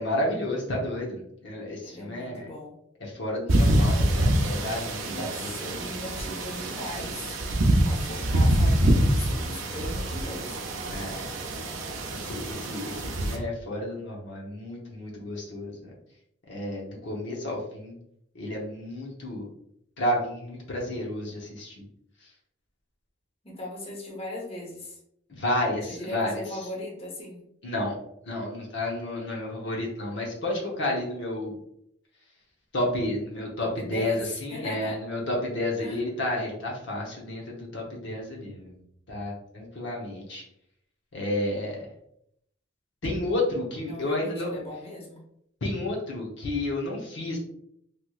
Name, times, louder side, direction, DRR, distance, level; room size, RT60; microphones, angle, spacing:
voice 1, 0.0-2.5 3.0-5.5 10.9-11.3 12.1-15.9 16.5-17.9 18.3-19.5 20.0-21.8 25.3-26.6 27.6-28.0 28.2-31.6 32.7-38.8 39.1-40.4 41.1-41.9 43.0-44.6 45.6-47.4, left 1 dB, 65° left, -2 dB, 0.8 m, -31 dB
voice 2, 1.8-2.7 5.0-7.4 7.8-10.6 23.4-25.0 25.9-27.4 33.6-34.2 34.5-34.9 35.8-36.0 43.9-45.2, left 1 dB, 30° left, -2 dB, 0.8 m, -38 dB
sound 1, 3.5-13.4, right 1 dB, 85° right, 0.6 m, -25 dB
3.3 x 2.9 x 2.3 m, 0.74 s
head